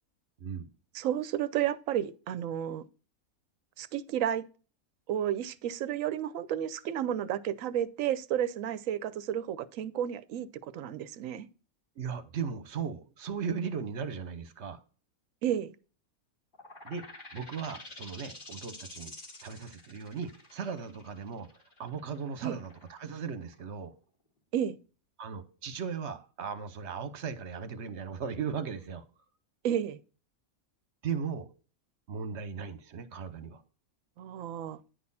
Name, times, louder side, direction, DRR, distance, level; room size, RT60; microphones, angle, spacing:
voice 1, 0.9-2.8 3.8-4.5 5.1-11.5 15.4-15.7 22.4-22.6 24.5-24.8 29.6-30.0 34.2-34.8, right 10 dB, 70° right, 1.0 m, -32 dB
voice 2, 12.0-14.8 16.8-17.0 17.3-19.1 19.4-21.5 21.8-23.9 25.2-29.0 31.0-31.5 32.1-33.6, right 6 dB, 55° right, 1.2 m, -37 dB
sound 1, 16.5-23.9, left 2 dB, 35° left, 2.1 m, -49 dB
9.8 x 4.3 x 5.5 m
omnidirectional pair, 1.5 m